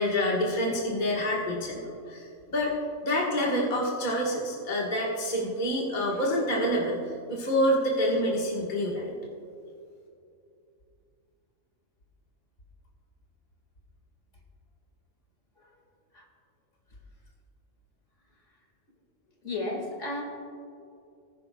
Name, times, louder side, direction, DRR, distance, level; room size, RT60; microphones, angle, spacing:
voice 1, 0.0-2.7 3.0-7.0 7.3-9.1, equal, 35° left, -3 dB, 1.5 m, -27 dB
voice 2, 19.4-20.2, left 2 dB, 60° left, 0 dB, 2.3 m, -32 dB
19.0 x 11.0 x 2.3 m, 2.5 s
omnidirectional pair, 1.4 m